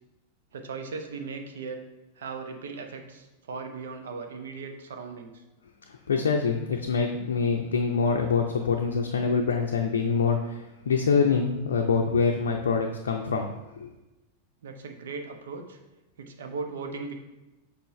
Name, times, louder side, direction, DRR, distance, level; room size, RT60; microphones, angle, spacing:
voice 1, 0.5-1.8 2.2-5.4 6.8-6.9 14.6-15.8 16.2-17.1, right 4 dB, 65° right, 5 dB, 0.7 m, -38 dB
voice 2, 5.9-13.9, left 5 dB, 65° left, 1 dB, 0.5 m, -25 dB
6.7 x 5.0 x 3.1 m, 1.0 s
figure-of-eight pair, 90°, 0 cm